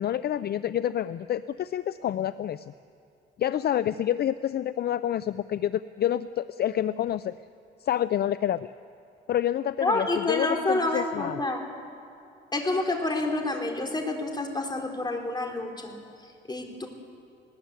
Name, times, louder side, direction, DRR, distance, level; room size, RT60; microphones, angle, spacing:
voice 1, 0.0-2.7 3.4-7.4 7.8-8.7 9.3-11.4, left 11 dB, 55° left, 15 dB, 0.5 m, -28 dB
voice 2, 9.8-11.6 12.5-15.9 16.5-16.9, left 2 dB, 20° left, 2 dB, 3.8 m, -28 dB
20.5 x 19.0 x 8.2 m, 2.7 s
cardioid pair, 90°, 20 cm